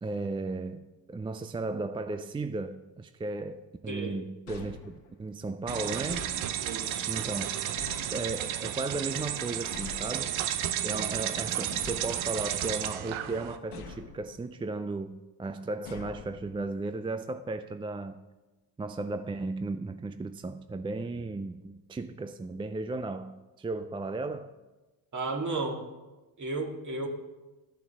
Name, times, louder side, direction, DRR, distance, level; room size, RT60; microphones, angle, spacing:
voice 1, 0.0-0.8 1.1-6.3 7.1-7.6 8.1-10.4 10.8-18.2 18.8-24.5, right 3 dB, 10° right, 0.3 m, -35 dB
voice 2, 3.9-4.2 6.6-7.1 25.1-25.8 26.4-27.1, right 3 dB, 35° right, 2.1 m, -33 dB
sound 1, 4.5-5.4 6.1-6.9 7.8-8.6 9.7-10.5 11.7-12.7 13.7-14.5 15.9-16.8, left 5 dB, 90° left, 1.6 m, -46 dB
sound 2, 5.7-13.6, right 11 dB, 75° right, 0.8 m, -33 dB
11.0 x 5.9 x 6.1 m
supercardioid pair, 65°, 48 cm